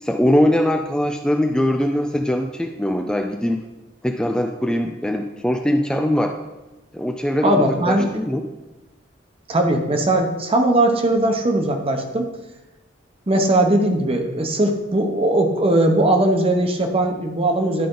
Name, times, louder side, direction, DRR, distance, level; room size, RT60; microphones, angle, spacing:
voice 1, 0.0-3.6 4.0-6.3 6.9-8.4, left 1 dB, 5° left, 3 dB, 0.4 m, -21 dB
voice 2, 7.4-8.2 9.5-12.3 13.3-17.9, right 1 dB, 30° right, 4 dB, 0.9 m, -19 dB
11.0 x 5.1 x 3.9 m, 1.1 s
head